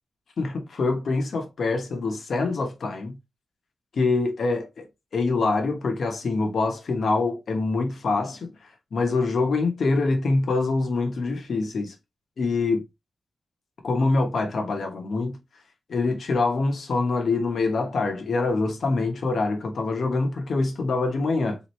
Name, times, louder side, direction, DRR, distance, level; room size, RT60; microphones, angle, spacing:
voice 1, 0.4-3.2 3.9-4.9 5.1-8.5 8.9-11.9 12.4-12.8 13.8-15.4 15.9-21.6, left 3 dB, 65° left, 1.0 m, -25 dB
3.6 x 3.0 x 3.1 m
wide cardioid pair, 115°, 0 cm